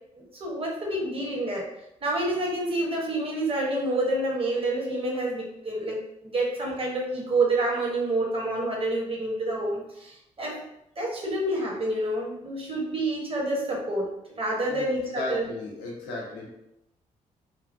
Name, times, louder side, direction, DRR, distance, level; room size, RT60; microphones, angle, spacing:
voice 1, 0.4-1.7 2.0-10.6 11.0-14.1 14.4-15.4, right 2 dB, 30° right, -2 dB, 1.1 m, -28 dB
voice 2, 14.7-16.5, left 2 dB, 75° left, -1 dB, 0.7 m, -35 dB
2.9 x 2.4 x 2.6 m, 0.83 s
hypercardioid pair, 40°, 18 cm